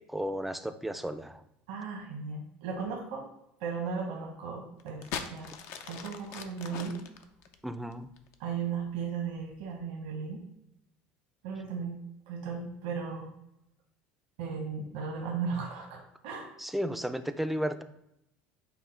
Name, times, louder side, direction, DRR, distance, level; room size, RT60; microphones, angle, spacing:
voice 1, 0.1-1.3 7.6-8.1 16.6-17.8, equal, 5° right, 9 dB, 0.3 m, -33 dB
voice 2, 1.7-3.2 3.6-5.1 5.3-5.5 5.8-7.0 8.4-10.4 11.4-13.3 14.4-16.5, right 5 dB, 80° right, -1 dB, 1.0 m, -36 dB
sound 1, 4.8-8.5 9.3-9.7, left 7 dB, 65° left, 0.5 m, -41 dB
5.6 x 2.1 x 4.4 m, 0.81 s
supercardioid pair, 90°, 4 cm